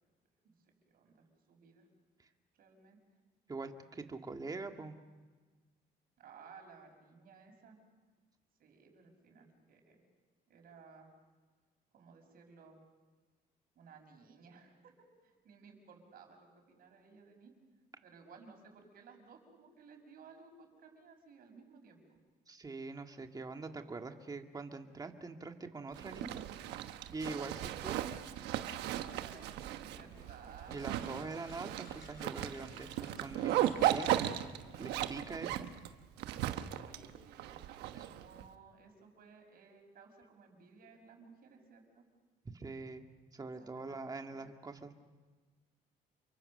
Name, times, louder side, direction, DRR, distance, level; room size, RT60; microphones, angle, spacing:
voice 1, 0.9-1.9 2.5-3.0 6.2-7.8 8.6-10.0 10.5-11.1 11.9-12.8 13.7-14.9 15.2-17.5 18.0-22.0 28.0-28.3 29.0-32.0 36.7-42.1 43.6-44.5, right 5 dB, 60° right, 3 dB, 6.3 m, -58 dB
voice 2, 3.5-5.0 22.5-28.0 30.7-34.2 34.8-35.6 37.9-38.1 42.4-43.0 43.3-44.9, right 3 dB, 20° right, 5 dB, 2.0 m, -44 dB
Zipper (clothing), 25.9-38.4, right 12 dB, 85° right, 1.2 m, -36 dB
sound 1, 29.9-35.3, left 4 dB, 65° left, 4.7 m, -59 dB
29.0 x 23.5 x 6.6 m, 1.3 s
cardioid pair, 110°, 17 cm